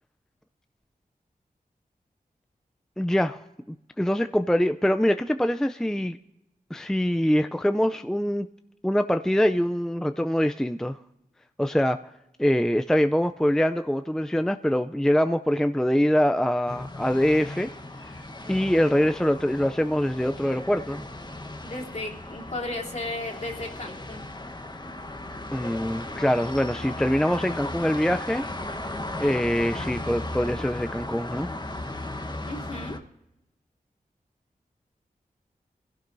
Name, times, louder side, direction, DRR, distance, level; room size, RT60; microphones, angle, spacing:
voice 1, 3.0-6.2 6.7-8.5 8.8-11.0 11.6-12.0 12.4-17.7 18.0-18.1 18.5-21.1 25.5-28.4 29.2-31.5, equal, 5° left, 9 dB, 0.4 m, -24 dB
sound 1, 16.7-33.0, left 1 dB, 30° left, 1.1 m, -36 dB
voice 2, 21.6-24.3 32.5-33.0, left 2 dB, 50° left, -1 dB, 3.0 m, -34 dB
24.0 x 16.0 x 2.6 m, 0.90 s
wide cardioid pair, 65°, 15 cm